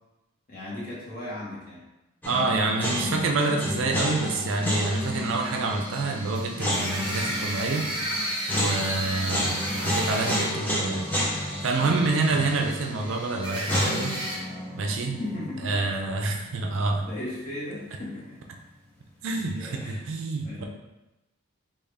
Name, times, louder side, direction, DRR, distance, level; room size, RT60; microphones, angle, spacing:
voice 1, 0.5-1.9 11.8-12.2 15.2-15.7 17.0-18.4 19.8-20.0 20.4-20.7, left 1 dB, 40° left, -7 dB, 1.2 m, -36 dB
sound 1, 2.2-17.2 17.5-17.6 19.3-19.8, left 1 dB, 10° left, 0.5 m, -31 dB
voice 2, 2.3-7.9 8.5-11.1 11.6-14.2 14.7-15.2 15.6-17.0 19.2-20.6, right 3 dB, 60° right, 2 dB, 0.4 m, -27 dB
sound 2, 3.5-14.4, equal, 20° right, 1.3 m, -35 dB
3.5 x 2.4 x 3.4 m, 0.98 s
head